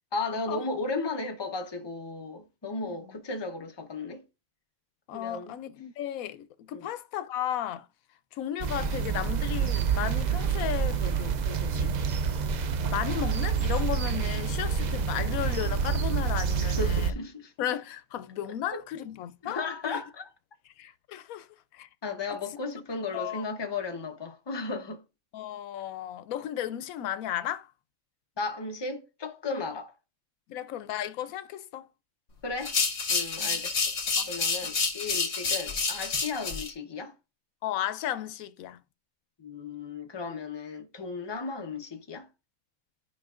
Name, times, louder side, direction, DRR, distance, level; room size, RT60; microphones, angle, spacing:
voice 1, 0.1-4.2 5.1-5.5 6.7-6.9 16.6-17.5 18.7-18.8 19.4-20.3 22.0-25.0 28.4-29.9 32.4-32.8 33.1-33.8 34.3-37.1 39.4-42.3, left 3 dB, 20° left, 0.8 m, -35 dB
voice 2, 2.8-3.2 5.1-7.9 8.3-11.9 12.9-17.2 17.6-20.0 20.8-21.5 21.7-21.9 22.3-22.4 23.1-23.4 25.3-27.7 30.5-31.9 33.4-33.6 34.2-34.3 34.6-34.7 37.6-38.8, left 11 dB, 90° left, 1.0 m, -34 dB
sound 1, 8.6-17.1, right 6 dB, 85° right, 0.3 m, -28 dB
sound 2, 32.6-36.7, left 4 dB, 60° left, 1.5 m, -29 dB
11.5 x 5.2 x 2.4 m
omnidirectional pair, 1.4 m